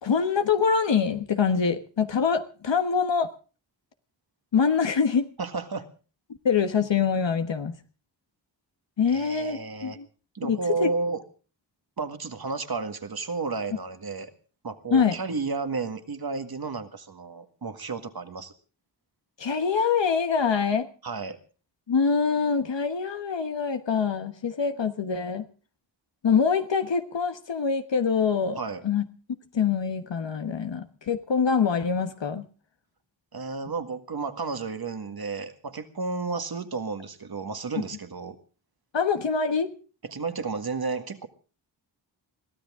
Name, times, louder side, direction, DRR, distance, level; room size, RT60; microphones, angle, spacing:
voice 1, 0.0-3.3 4.5-5.3 6.4-7.7 9.0-10.1 10.4-10.9 14.9-15.1 19.4-20.9 21.9-25.4 26.2-28.6 28.8-29.0 29.5-32.4 38.9-39.7, left 6 dB, 70° left, 8 dB, 1.3 m, -24 dB
voice 2, 5.4-5.9 9.1-10.0 10.3-11.2 12.0-14.3 14.6-18.5 21.0-21.4 28.6-28.8 33.3-38.4 40.0-41.3, right 4 dB, 55° right, 8 dB, 1.9 m, -32 dB
22.5 x 15.5 x 3.7 m, 0.37 s
wide cardioid pair, 110°, 45 cm